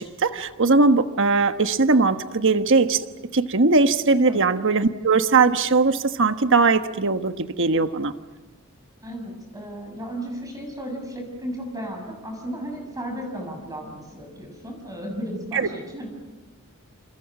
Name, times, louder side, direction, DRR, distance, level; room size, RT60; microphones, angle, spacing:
voice 1, 0.0-8.1 15.5-15.7, right 3 dB, 60° right, 9 dB, 1.3 m, -20 dB
voice 2, 9.0-16.1, right 1 dB, 15° right, 2 dB, 6.6 m, -34 dB
29.5 x 28.5 x 6.1 m, 1.1 s
head